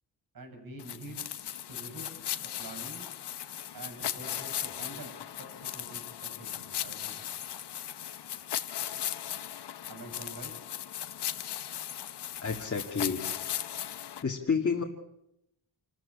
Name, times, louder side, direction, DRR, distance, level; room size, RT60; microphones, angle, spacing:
voice 1, 0.3-1.3 1.7-3.1 3.7-7.6 9.9-10.6, right 2 dB, 55° right, 4 dB, 6.8 m, -47 dB
sound 1, 0.8-14.2, left 10 dB, 80° left, 1.3 m, -37 dB
voice 2, 12.4-13.2 13.9-14.8, left 5 dB, 35° left, -2 dB, 2.2 m, -30 dB
27.5 x 14.0 x 9.6 m, 0.81 s
wide cardioid pair, 155°, 40 cm